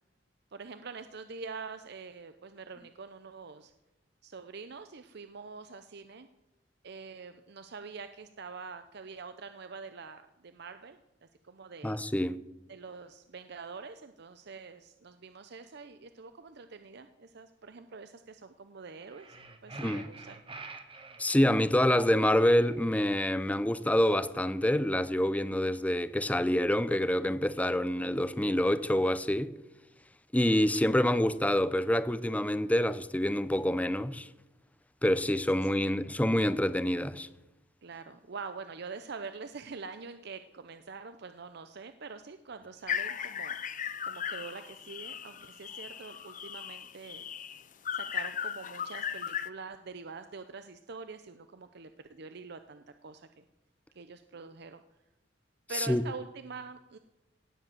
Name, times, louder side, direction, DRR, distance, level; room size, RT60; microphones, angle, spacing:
voice 1, 0.5-3.7 4.2-6.3 6.8-11.0 11.4-12.0 12.7-19.3 19.6-20.4 35.8-36.0 37.8-47.2 47.9-53.4 53.9-54.8 55.7-57.0, right 4 dB, 60° right, 0.7 m, -45 dB
voice 2, 11.8-12.4 19.8-20.1 21.2-29.5 30.3-34.3 35.0-37.3 55.8-56.0, left 1 dB, 10° left, 0.6 m, -27 dB
sound 1, 19.1-21.2 21.9-23.1, right 3 dB, 30° right, 1.4 m, -47 dB
sound 2, 42.9-49.5, left 8 dB, 45° left, 0.7 m, -37 dB
17.5 x 7.7 x 7.8 m
head